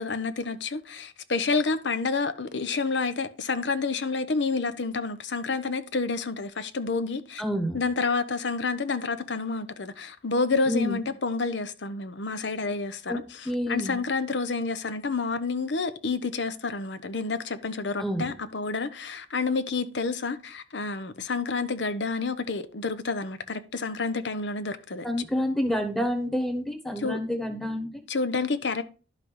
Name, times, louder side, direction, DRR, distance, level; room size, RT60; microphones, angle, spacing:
voice 1, 0.0-7.4 7.7-13.2 13.7-25.1 27.0-27.2 28.1-28.8, left 4 dB, 85° left, 0.9 m, -29 dB
voice 2, 7.4-7.8 10.7-11.1 13.1-14.0 18.0-18.3 25.0-27.9, equal, ahead, 1.3 m, -29 dB
11.5 x 5.9 x 4.7 m
head